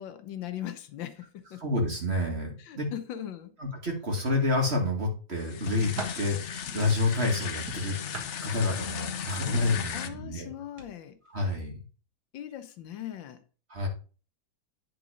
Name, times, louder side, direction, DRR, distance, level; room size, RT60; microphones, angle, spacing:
voice 1, 0.0-1.6 2.6-3.5 9.9-11.2 12.3-13.4, left 11 dB, 85° left, 1.6 m, -39 dB
voice 2, 1.6-2.9 3.6-10.5 11.3-11.8 13.7-13.9, left 2 dB, 35° right, 2.2 m, -29 dB
sound 1, 4.1-4.9 5.4-6.3 7.7-9.1 9.5-9.8 10.7-10.9 11.3-11.4, right 3 dB, 55° right, 2.1 m, -41 dB
sound 2, 5.4-10.1, left 8 dB, 60° left, 0.8 m, -36 dB
9.8 x 4.0 x 5.0 m
omnidirectional pair, 2.0 m